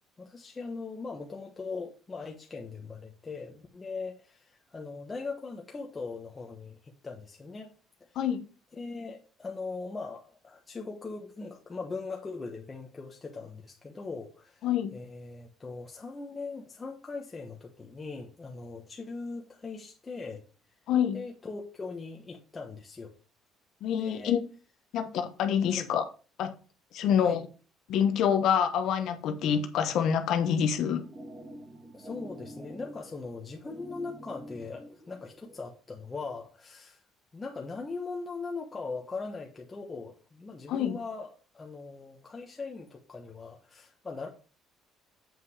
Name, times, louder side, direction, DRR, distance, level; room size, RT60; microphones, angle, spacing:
voice 1, 0.2-7.7 8.1-8.2 8.8-14.7 14.9-20.4 21.1-23.1 23.9-24.4 25.8-25.9 27.2-27.4 31.9-37.0 37.3-41.3 41.5-44.3, left 4 dB, 20° left, 1.2 m, -40 dB
voice 2, 20.9-21.2 23.8-24.4 24.9-26.0 26.4-26.5 26.9-27.5 27.9-31.0 40.7-41.0, left 8 dB, 70° left, 1.0 m, -26 dB
sound 1, 30.8-35.6, right 1 dB, 20° right, 2.7 m, -47 dB
7.6 x 5.6 x 4.9 m
cardioid pair, 125°, 0 cm